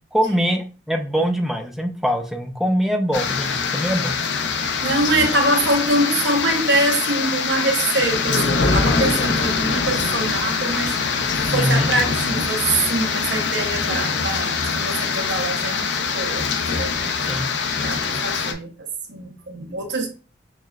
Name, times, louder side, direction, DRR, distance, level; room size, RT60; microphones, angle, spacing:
voice 1, 0.1-4.2 11.5-11.9 17.2-17.5, equal, ahead, 4 dB, 0.4 m, -23 dB
sound 1, 3.1-18.5, left 5 dB, 75° left, 0.5 m, -23 dB
voice 2, 4.8-16.5 16.7-17.1 17.8-18.7 19.1-20.1, right 2 dB, 90° right, 3 dB, 0.9 m, -24 dB
6.3 x 2.1 x 2.3 m, 0.36 s
head